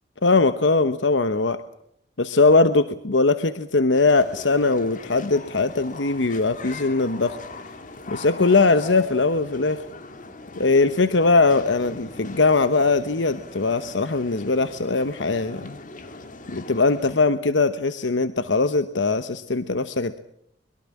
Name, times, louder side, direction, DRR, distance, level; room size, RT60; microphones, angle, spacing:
voice 1, 0.2-1.6 2.2-7.4 8.1-9.8 10.6-15.8 16.5-20.2, left 3 dB, 80° left, 11 dB, 1.1 m, -20 dB
sound 1, 3.9-17.1, left 3 dB, 45° left, 2.1 m, -40 dB
24.0 x 22.5 x 7.3 m, 0.73 s
head